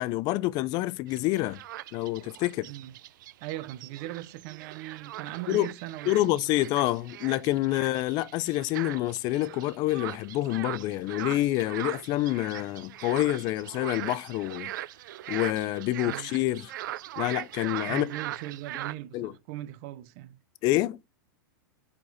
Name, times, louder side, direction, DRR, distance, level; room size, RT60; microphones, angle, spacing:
voice 1, 0.0-1.6 1.9-2.7 5.5-5.7 6.1-14.7 15.3-16.7 17.2-18.1 19.1-19.3 20.6-21.0, left 16 dB, 40° left, 0.6 m, -27 dB
sound 1, 1.1-18.9, right 14 dB, 65° right, 0.5 m, -40 dB
voice 2, 3.4-6.5 7.6-7.7 16.0-16.3 17.9-20.4, right 15 dB, 50° right, 0.9 m, -39 dB
8.7 x 4.5 x 4.1 m
supercardioid pair, 140°, 11 cm